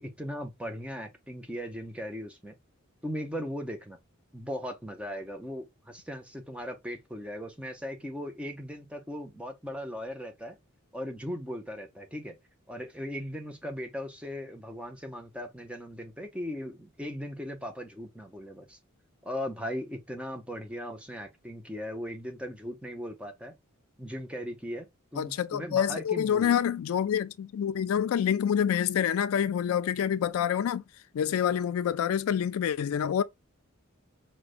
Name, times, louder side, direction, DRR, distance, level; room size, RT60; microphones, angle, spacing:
voice 1, 0.0-2.5 3.0-4.0 4.3-10.5 10.9-12.3 12.7-18.8 19.2-23.5 24.0-24.9 25.1-26.6, equal, 5° right, 0.5 m, -38 dB
voice 2, 25.2-30.8 31.1-33.2, left 8 dB, 85° left, 0.3 m, -27 dB
4.9 x 2.1 x 2.4 m
head